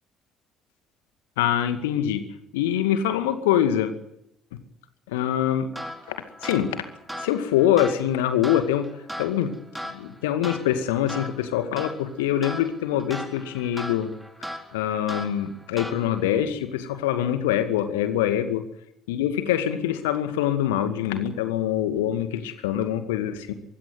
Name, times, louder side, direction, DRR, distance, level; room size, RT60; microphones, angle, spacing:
voice 1, 1.4-2.2 2.5-3.9 5.1-5.7 6.1-6.2 6.4-6.8 7.2-8.9 9.2-9.5 9.9-14.1 14.7-18.6 19.1-23.5, left 11 dB, 70° left, 9 dB, 2.2 m, -24 dB
sound 1, 5.7-16.4, equal, 5° right, 4.3 m, -38 dB
23.5 x 16.0 x 9.7 m, 0.79 s
figure-of-eight pair, 50°, 0 cm